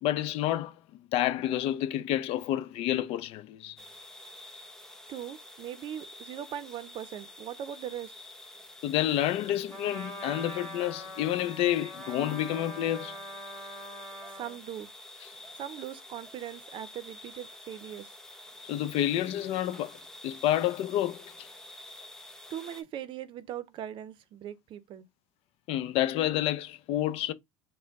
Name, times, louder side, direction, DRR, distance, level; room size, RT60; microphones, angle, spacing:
voice 1, 0.0-0.7 1.1-3.8 8.8-13.2 18.7-20.0 20.2-21.5 25.7-27.3, left 12 dB, 60° left, 0.5 m, -29 dB
sound 1, 3.8-22.8, left 1 dB, 5° left, 0.8 m, -48 dB
voice 2, 5.1-8.1 14.4-14.9 15.6-18.1 22.5-25.1, right 10 dB, 45° right, 0.6 m, -40 dB
Trumpet, 9.7-14.6, equal, 20° left, 2.0 m, -43 dB
4.3 x 2.1 x 4.6 m
supercardioid pair, 115°, 12 cm